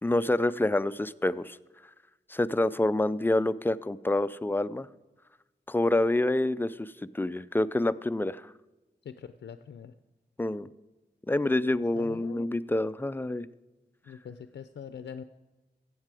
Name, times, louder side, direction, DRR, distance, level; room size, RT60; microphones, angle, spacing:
voice 1, 0.0-1.6 2.3-4.9 5.7-8.5 10.4-10.7 11.3-13.5, left 1 dB, 10° left, 15 dB, 0.3 m, -27 dB
voice 2, 9.0-9.9 11.9-12.5 14.0-15.2, left 7 dB, 85° left, 10 dB, 0.4 m, -43 dB
15.0 x 7.5 x 4.8 m, 1.1 s
wide cardioid pair, 90°, 18 cm